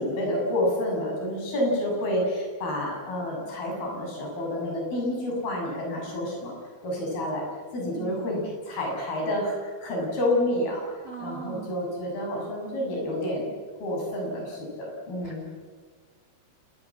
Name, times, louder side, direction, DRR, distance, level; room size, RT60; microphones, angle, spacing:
voice 1, 0.0-6.5 6.8-7.5 7.7-10.8 11.2-13.5 13.8-15.5, left 1 dB, 50° left, -1 dB, 9.2 m, -29 dB
voice 2, 7.9-8.5 11.0-11.7 15.2-15.5, right 6 dB, 40° right, 2 dB, 2.9 m, -40 dB
28.0 x 20.5 x 7.4 m, 1.5 s
omnidirectional pair, 5.5 m